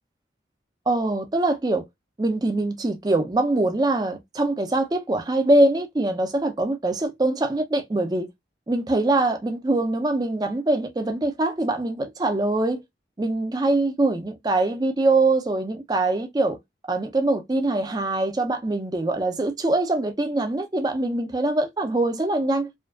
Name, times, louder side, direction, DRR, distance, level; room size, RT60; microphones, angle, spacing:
voice 1, 0.9-1.9 2.2-8.3 8.7-12.8 13.2-16.6 16.9-22.7, right 2 dB, 20° right, 0.4 m, -23 dB
2.5 x 2.3 x 2.3 m
head